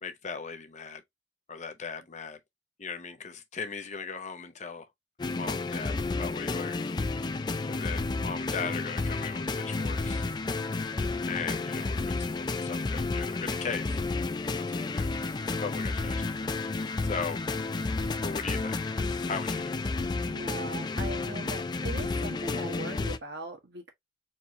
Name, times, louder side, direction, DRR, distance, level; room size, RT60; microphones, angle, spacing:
voice 1, 0.0-1.0 1.5-2.4 2.8-4.9 5.2-6.8 7.7-10.3 11.2-14.0 14.4-15.2 15.5-16.3 16.6-17.4 18.2-18.9 19.3-19.8, left 5 dB, 40° left, 0.8 m, -38 dB
sound 1, 5.2-23.2, left 3 dB, 25° left, 0.4 m, -31 dB
voice 2, 20.3-23.9, right 2 dB, 65° right, 1.4 m, -40 dB
4.5 x 3.0 x 3.0 m
head